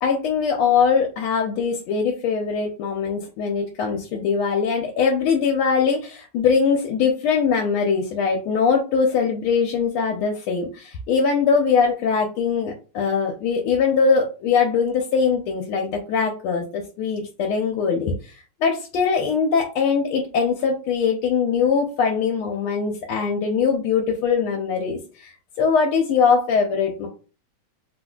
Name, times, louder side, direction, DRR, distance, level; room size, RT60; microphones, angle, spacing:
voice 1, 0.0-18.3 18.6-25.3 25.6-27.1, left 5 dB, 80° left, 0 dB, 1.4 m, -21 dB
3.6 x 2.5 x 2.2 m, 0.34 s
omnidirectional pair, 2.3 m